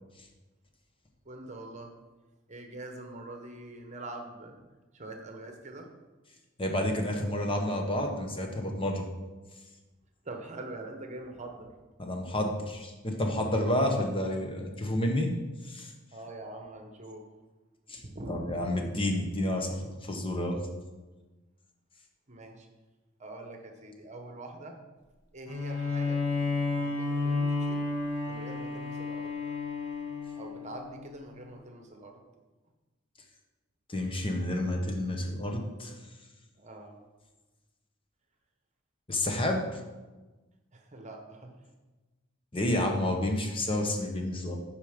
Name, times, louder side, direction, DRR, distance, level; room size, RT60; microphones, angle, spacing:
voice 1, 1.2-1.9 2.5-4.6 4.9-5.9 10.2-11.7 16.1-17.3 18.0-18.9 22.3-22.7 23.2-24.8 25.3-26.3 26.8-27.9 28.3-29.4 30.4-32.2 36.5-37.0 40.7-41.6, right 2 dB, 35° right, 4 dB, 1.1 m, -44 dB
voice 2, 6.6-9.1 12.0-15.3 15.6-15.9 17.9-18.0 18.3-20.6 33.9-35.9 39.1-39.8 42.5-44.6, left 1 dB, 25° left, 2 dB, 1.0 m, -30 dB
Bowed string instrument, 25.5-30.9, left 3 dB, 75° left, 1.7 m, -31 dB
9.1 x 5.0 x 5.1 m, 1.2 s
head